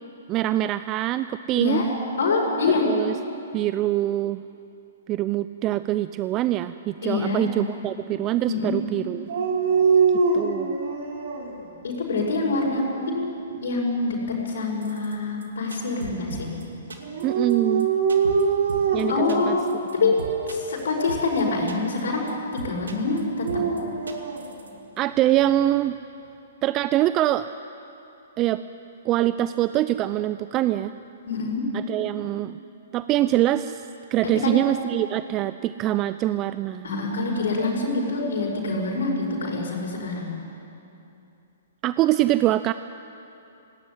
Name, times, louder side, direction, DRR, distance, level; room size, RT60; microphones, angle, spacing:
voice 1, 0.3-1.8 2.7-3.2 3.5-4.4 5.1-9.3 10.3-10.8 17.2-17.9 18.9-19.6 20.0-20.1 25.0-26.0 26.6-27.5 28.4-28.6 29.0-30.9 31.7-32.6 32.9-36.9 41.8-42.7, right 14 dB, 30° right, 13 dB, 0.5 m, -24 dB
voice 2, 1.5-1.9 2.2-2.9 7.0-7.4 8.5-8.8 11.8-16.5 19.1-20.1 20.5-22.3 22.5-23.5 31.3-31.7 34.4-34.5 36.8-40.4, left 3 dB, 75° left, -2 dB, 5.5 m, -25 dB
Dog, 9.3-11.5 12.1-12.9 17.0-19.3 20.1-20.5 23.1-24.4, right 5 dB, 65° right, 4.5 m, -24 dB
sound 1, 14.8-15.1 15.4-15.5 15.7-16.6 16.9-17.2 17.5-17.6 17.8-17.9 18.1-18.4 18.7-19.0 19.3-19.9 20.2-20.8 21.1-21.4 21.7-22.0 22.3-22.4 22.6-23.2 23.5-23.8 24.1-24.7 25.0-25.1, right 3 dB, 85° right, 2.5 m, -37 dB
18.0 x 17.5 x 9.9 m, 2.8 s
hypercardioid pair, 130°, 0 cm